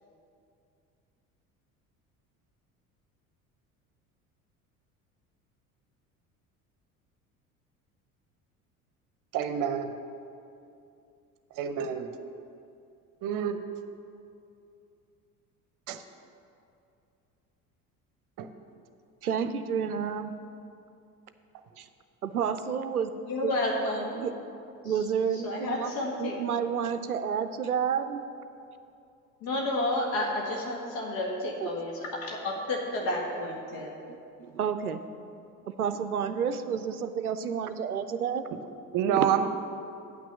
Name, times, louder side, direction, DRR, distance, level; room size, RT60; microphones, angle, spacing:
voice 1, 9.3-9.9 11.5-12.1 13.2-13.6 15.9-16.0 18.4-18.5 38.9-39.5, right 8 dB, 45° right, 9 dB, 0.8 m, -27 dB
voice 2, 19.2-20.3 21.8-21.9 22.2-23.1 23.4-23.5 24.2-24.3 24.8-25.9 26.2-28.2 31.6-31.9 33.7-33.8 34.4-35.0 35.7-38.5, right 7 dB, 90° right, 11 dB, 0.5 m, -30 dB
voice 3, 23.3-24.2 24.8-24.9 25.4-26.3 29.4-33.9, left 1 dB, 50° left, -1 dB, 1.7 m, -31 dB
9.0 x 6.1 x 7.0 m, 2.6 s
figure-of-eight pair, 65°, 43 cm